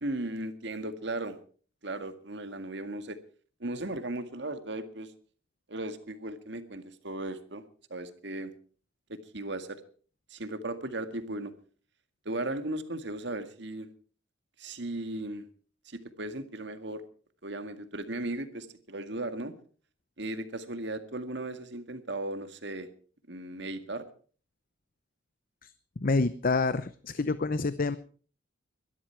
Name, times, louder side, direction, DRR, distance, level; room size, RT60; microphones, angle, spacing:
voice 1, 0.0-1.4 1.8-3.2 3.6-5.1 5.7-7.6 7.9-8.5 9.1-9.8 10.3-11.5 12.3-13.9 14.6-15.5 15.9-17.0 17.4-19.5 20.2-22.9 23.3-24.0, right 2 dB, 60° right, 9 dB, 2.0 m, -36 dB
voice 2, 26.0-28.0, left 3 dB, 45° left, 14 dB, 0.7 m, -27 dB
22.5 x 12.5 x 4.6 m, 0.43 s
head